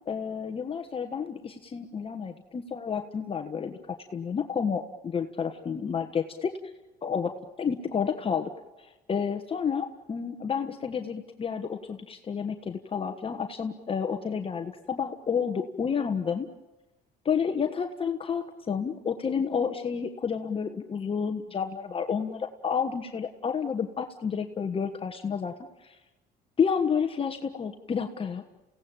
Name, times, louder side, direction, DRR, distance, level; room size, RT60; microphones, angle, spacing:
voice 1, 0.0-6.5 7.0-7.3 7.6-8.5 8.8-16.5 17.2-25.5 25.8-26.0 26.6-28.4, left 6 dB, 35° left, 6 dB, 1.4 m, -30 dB
30.0 x 17.5 x 9.0 m, 1.1 s
cardioid pair, 110°, 17 cm